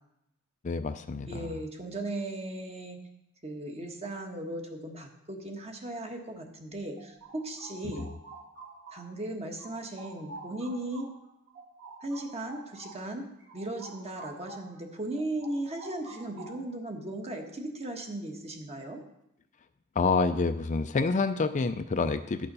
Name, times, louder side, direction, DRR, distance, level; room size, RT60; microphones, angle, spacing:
voice 1, 0.6-1.6 8.0-8.1 20.0-22.5, left 4 dB, 35° left, 9 dB, 0.4 m, -28 dB
voice 2, 1.3-3.0 3.4-8.1 8.9-11.1 12.0-13.3 13.5-19.0, right 1 dB, 30° right, 3 dB, 1.3 m, -37 dB
sound 1, 7.0-9.3 9.6-14.8 15.1-16.8, right 2 dB, 55° right, 2.3 m, -48 dB
11.0 x 6.7 x 5.4 m, 0.83 s
head